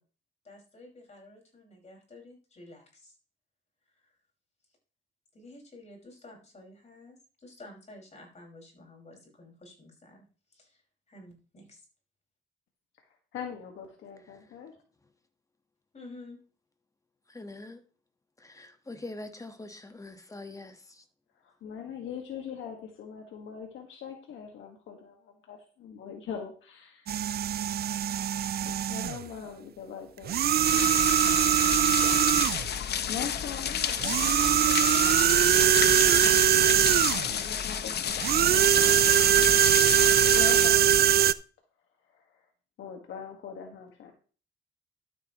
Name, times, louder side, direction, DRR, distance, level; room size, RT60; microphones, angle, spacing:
voice 1, 0.4-3.2 3.8-4.2 5.3-10.8 11.1-11.8 15.9-16.4, left 2 dB, 35° left, 5.4 m, -51 dB
voice 2, 13.3-14.7 21.4-27.4 28.5-30.9 33.1-36.1 36.4-39.0 39.7-39.8 40.3-41.2 42.0-42.5 42.8-44.1, left 7 dB, 80° left, 1.7 m, -42 dB
voice 3, 17.3-17.8 18.4-20.7, left 2 dB, 15° left, 1.4 m, -43 dB
sound 1, 27.1-29.2 30.2-32.7 34.0-37.3 38.2-41.3, right 11 dB, 50° right, 0.5 m, -22 dB
sound 2, 30.6-40.7, left 8 dB, 55° left, 0.9 m, -31 dB
12.5 x 8.1 x 3.1 m
cardioid pair, 90°, 20 cm